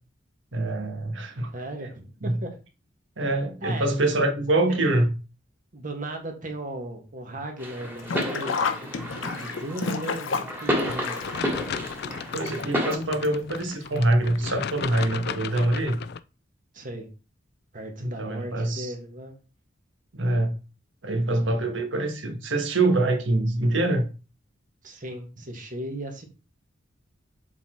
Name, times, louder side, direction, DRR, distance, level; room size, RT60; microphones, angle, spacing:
voice 1, 0.5-1.5 2.2-2.4 3.2-5.1 12.3-16.0 18.0-18.9 20.1-20.5 21.0-24.1, right 2 dB, 75° right, 1.5 m, -24 dB
voice 2, 1.5-2.5 3.6-3.9 4.7-4.8 5.7-11.5 16.7-17.1 17.7-19.4 24.8-26.2, right 1 dB, 45° right, 1.7 m, -36 dB
sound 1, 7.6-12.9, equal, 10° right, 2.1 m, -31 dB
Sink (filling or washing), 8.0-12.9 13.2-13.3 14.4-14.5 14.8-14.9, left 5 dB, 85° left, 0.8 m, -31 dB
sound 2, 11.2-16.2, left 7 dB, 60° left, 0.4 m, -35 dB
7.2 x 4.1 x 4.4 m
head